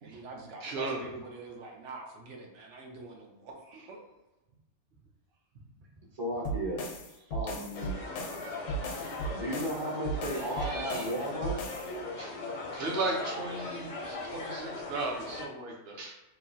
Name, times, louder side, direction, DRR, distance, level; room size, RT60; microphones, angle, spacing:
voice 1, 0.0-4.1, right 3 dB, 90° right, 1 dB, 1.0 m, -45 dB
voice 2, 0.6-1.0 3.7-3.9 8.9-9.4 10.3-11.1 12.2-16.1, right 2 dB, 65° right, -1 dB, 0.9 m, -37 dB
voice 3, 6.2-6.9 7.3-8.0 9.3-11.6, equal, 35° right, -6 dB, 0.5 m, -34 dB
sound 1, 6.4-11.9, right 2 dB, 80° left, 0.9 m, -37 dB
sound 2, 7.7-15.5, left 2 dB, 55° left, 0.5 m, -39 dB
3.0 x 2.3 x 2.6 m, 1.0 s
omnidirectional pair, 1.2 m